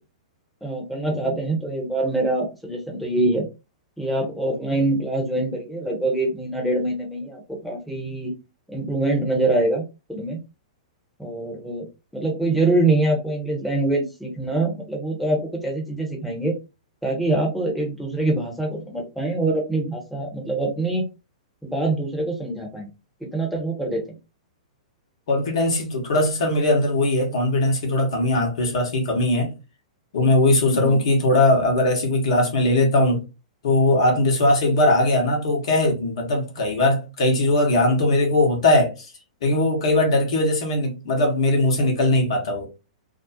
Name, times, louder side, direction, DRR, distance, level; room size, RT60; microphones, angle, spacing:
voice 1, 0.6-3.4 4.0-8.3 8.7-9.8 10.1-10.4 11.2-11.9 12.1-16.5 17.0-21.1 21.6-22.9 23.2-24.2 30.6-31.0, right 2 dB, ahead, 0.8 m, -24 dB
voice 2, 25.3-29.5 30.1-33.2 33.6-39.1 39.4-42.7, left 2 dB, 50° left, 1.0 m, -20 dB
2.6 x 2.0 x 2.6 m
figure-of-eight pair, 105°, 4 cm